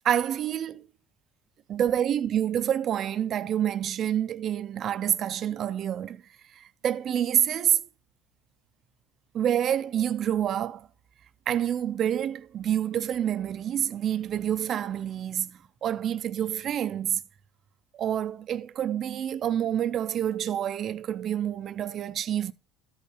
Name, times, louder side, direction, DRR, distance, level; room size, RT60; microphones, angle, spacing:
voice 1, 0.0-0.9 1.7-6.2 6.5-7.9 9.3-10.9 11.5-17.2 17.9-22.5, right 10 dB, 50° right, 0.5 m, -27 dB
13.0 x 5.5 x 3.2 m
supercardioid pair, 95°, 0 cm